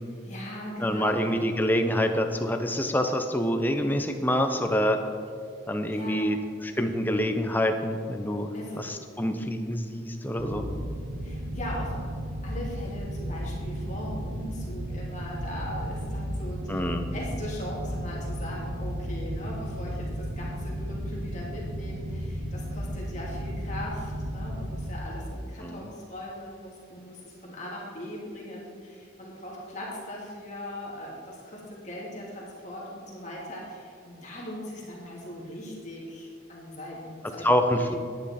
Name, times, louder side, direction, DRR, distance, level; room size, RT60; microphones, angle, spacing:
voice 1, 0.2-1.4 5.9-6.4 8.5-8.8 9.3-9.5 11.2-12.0 12.4-37.5 37.7-38.0, left 1 dB, 40° left, -4 dB, 2.3 m, -39 dB
voice 2, 0.8-5.0 5.7-6.4 6.6-8.5 8.8-10.7 16.7-17.1 25.6-25.9 37.4-37.9, equal, 10° left, 5 dB, 0.6 m, -26 dB
sound 1, 10.4-25.0, equal, 80° right, 1.4 m, -34 dB
10.5 x 9.5 x 4.3 m, 2.2 s
head